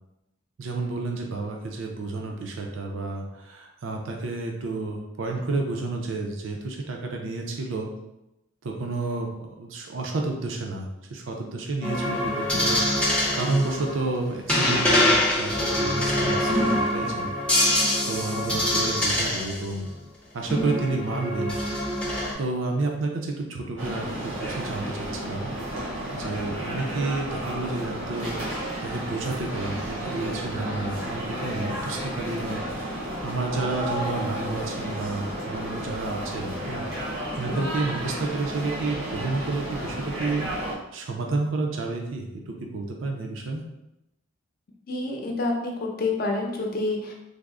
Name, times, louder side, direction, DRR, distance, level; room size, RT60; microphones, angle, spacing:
voice 1, 0.6-7.9 8.6-17.3 17.7-19.9 20.3-21.6 22.4-25.6 26.1-43.6, right 3 dB, 70° right, 1 dB, 0.5 m, -30 dB
sound 1, 11.8-19.7 20.5-22.3, left 1 dB, 5° left, 0.6 m, -24 dB
sound 2, 23.8-40.7, right 1 dB, 90° right, 1.1 m, -32 dB
voice 2, 44.9-47.1, left 2 dB, 45° left, 1 dB, 0.6 m, -28 dB
3.4 x 2.0 x 3.6 m, 0.90 s
head